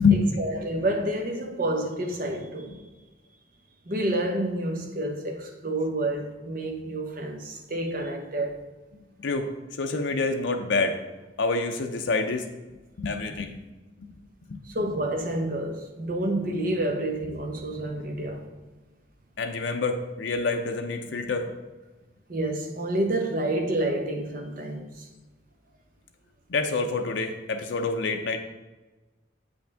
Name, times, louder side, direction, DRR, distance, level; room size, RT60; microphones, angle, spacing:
voice 1, 0.0-2.8 3.9-8.6 14.6-18.5 22.3-25.1, right 1 dB, 45° right, 0.9 m, -29 dB
voice 2, 9.8-11.0 11.4-12.4 13.0-13.5 19.4-21.5 26.5-28.4, left 4 dB, 75° left, 0.6 m, -26 dB
7.9 x 5.3 x 3.4 m
head